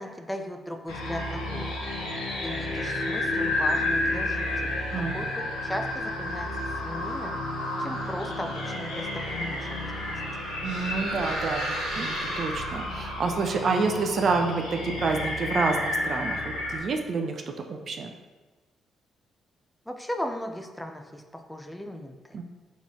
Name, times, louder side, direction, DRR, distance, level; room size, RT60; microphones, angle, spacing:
voice 1, 0.0-1.8 2.4-10.5 19.9-22.4, equal, 5° left, 5 dB, 0.5 m, -37 dB
sound 1, 0.9-16.8, left 2 dB, 85° left, 0.8 m, -31 dB
voice 2, 4.9-5.3 10.6-17.4 17.7-18.1 22.3-22.4, right 4 dB, 55° right, 4 dB, 0.4 m, -28 dB
sound 2, 8.6-13.1, right 1 dB, 80° right, 1.2 m, -35 dB
3.9 x 3.0 x 3.7 m, 1.3 s
hypercardioid pair, 45°, 0 cm